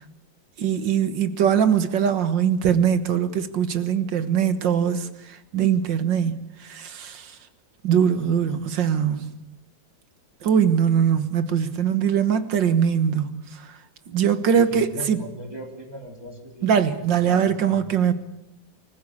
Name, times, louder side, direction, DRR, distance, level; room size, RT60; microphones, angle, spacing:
voice 1, 0.6-7.4 7.8-9.3 10.4-13.8 14.1-15.2 16.6-18.1, right 8 dB, 75° right, 2.0 m, -22 dB
voice 2, 14.7-16.9 17.2-17.8, equal, 10° right, 4.2 m, -39 dB
24.5 x 15.0 x 8.6 m
omnidirectional pair, 2.0 m